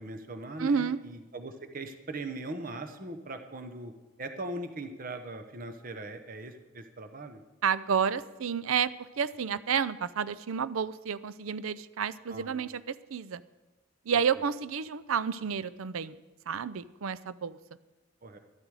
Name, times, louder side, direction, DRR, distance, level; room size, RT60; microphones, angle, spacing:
voice 1, 0.0-3.9 4.2-7.4 12.3-12.8 18.2-18.4, right 2 dB, 40° right, 7 dB, 0.9 m, -40 dB
voice 2, 0.6-1.0 7.6-13.4 14.1-16.2 16.5-17.6, right 7 dB, 80° right, 16 dB, 0.5 m, -30 dB
12.5 x 12.5 x 4.8 m, 1.1 s
head